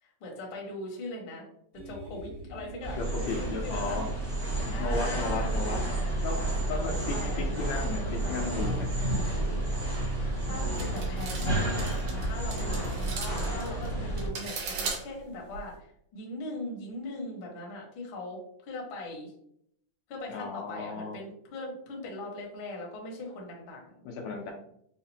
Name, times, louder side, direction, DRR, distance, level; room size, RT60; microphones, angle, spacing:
voice 1, 0.0-1.5 1.8-3.0 3.3-4.0 4.7-6.3 6.7-8.8 10.4-15.9 16.1-19.3 20.1-24.0, left 2 dB, 60° left, -1 dB, 1.4 m, -41 dB
sound 1, 1.7-14.6, equal, 65° right, 2.3 m, -45 dB
sound 2, 2.8-14.3, right 1 dB, 35° right, 0.8 m, -31 dB
voice 2, 2.9-4.0 4.8-6.0 6.2-6.4 6.7-8.9 20.3-21.2 24.0-24.5, left 4 dB, 80° left, 0 dB, 1.8 m, -35 dB
sound 3, 10.8-15.7, right 4 dB, 80° right, 2.4 m, -38 dB
5.6 x 2.4 x 2.7 m, 0.70 s
omnidirectional pair, 3.4 m